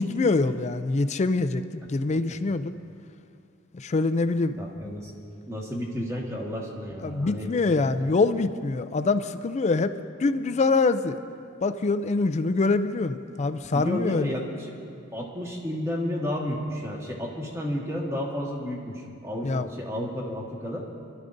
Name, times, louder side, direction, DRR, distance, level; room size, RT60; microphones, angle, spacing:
voice 1, 0.0-1.6 1.9-2.7 3.7-4.9 7.0-9.9 10.2-11.2 11.6-14.3 19.4-19.7, left 3 dB, 35° left, 11 dB, 0.4 m, -24 dB
voice 2, 4.6-5.1 5.5-7.5 13.7-14.8 15.1-20.8, left 1 dB, 15° right, -2 dB, 1.6 m, -32 dB
30.0 x 12.0 x 2.6 m, 2.6 s
head